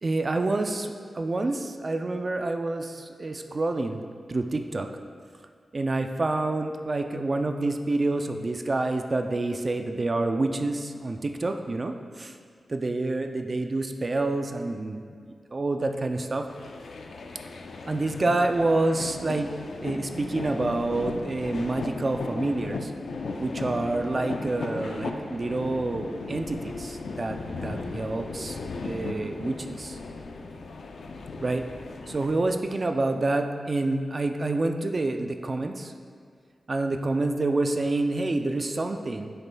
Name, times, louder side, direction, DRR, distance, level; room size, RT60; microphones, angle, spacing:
voice 1, 0.0-4.0 4.3-4.9 5.7-12.3 12.7-16.5 17.9-19.5 19.8-22.9 23.4-28.6 28.8-30.0 31.4-31.6 32.1-35.9 36.7-39.3, right 2 dB, 35° right, 6 dB, 0.4 m, -28 dB
sound 1, 16.5-32.7, left 3 dB, 80° left, 0.5 m, -36 dB
10.5 x 6.5 x 2.2 m, 2.1 s
wide cardioid pair, 135°, 0 cm